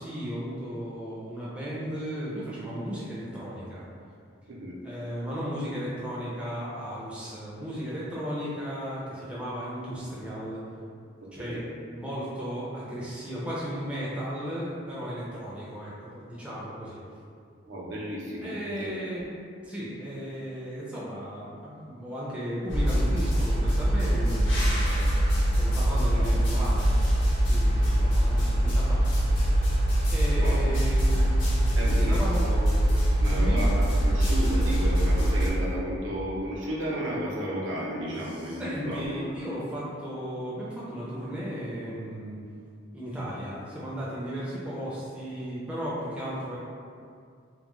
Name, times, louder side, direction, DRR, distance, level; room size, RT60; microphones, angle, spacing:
voice 1, 0.0-3.9 4.8-10.6 11.3-11.6 11.9-17.0 18.4-19.2 19.6-27.0 27.5-29.4 30.1-32.5 33.2-33.6 38.2-42.4 42.9-46.6, equal, 5° right, -9 dB, 0.4 m, -35 dB
voice 2, 11.2-11.6 17.7-18.9 26.1-26.4 30.3-30.6 31.0-31.3 31.8-32.8 33.2-39.2, equal, 85° right, -5 dB, 0.6 m, -33 dB
sound 1, 22.7-35.5, equal, 75° left, 0.7 m, -23 dB
2.2 x 2.1 x 2.9 m, 2.3 s
head